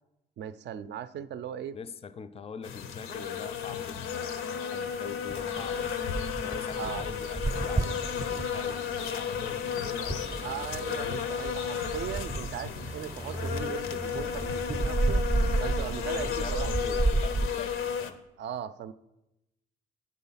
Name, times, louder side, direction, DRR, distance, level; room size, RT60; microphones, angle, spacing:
voice 1, 0.4-1.8 6.8-7.1 10.4-15.2 15.6-17.0 18.4-18.9, right 9 dB, 60° right, 0.4 m, -38 dB
voice 2, 1.7-6.0 6.4-11.9 12.7-12.9 15.3-15.8 16.1-18.2, left 6 dB, 30° left, 0.4 m, -44 dB
sound 1, 2.6-18.1, left 7 dB, 85° left, 0.6 m, -34 dB
sound 2, 5.3-17.5, right 2 dB, 15° right, 0.6 m, -32 dB
8.3 x 3.9 x 5.6 m
cardioid pair, 90°, 20 cm